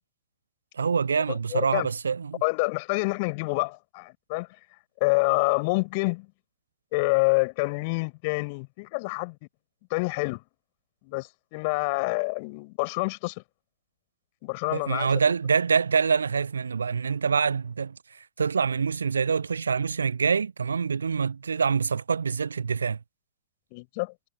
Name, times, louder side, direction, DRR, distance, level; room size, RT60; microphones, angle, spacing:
voice 1, 0.8-2.4 14.7-17.9 18.4-23.0, right 5 dB, 75° right, 0.4 m, -25 dB
voice 2, 1.3-1.9 2.4-4.5 5.0-6.3 6.9-9.4 9.9-10.4 11.0-13.4 14.4-15.1 23.7-24.1, left 29 dB, 45° left, 6.4 m, -27 dB
figure-of-eight pair, 90°, 0 cm